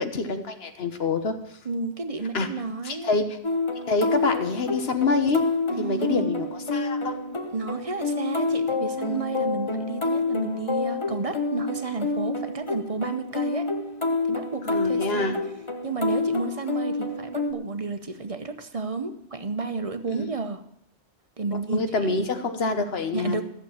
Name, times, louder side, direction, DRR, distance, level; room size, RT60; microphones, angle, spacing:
voice 1, 0.0-1.3 2.3-2.5 2.8-3.4 3.9-5.4 5.8-7.2 14.6-15.3 20.1-20.2 21.5-23.4, left 3 dB, 75° left, 7 dB, 1.4 m, -26 dB
voice 2, 1.6-3.2 5.7-6.3 7.5-13.7 14.3-15.4 15.8-20.6 21.4-22.3 23.1-23.4, right 4 dB, 35° right, 9 dB, 0.9 m, -31 dB
sound 1, 3.4-17.5, left 3 dB, 30° left, 1.1 m, -28 dB
13.5 x 6.8 x 8.7 m, 0.75 s
omnidirectional pair, 1.1 m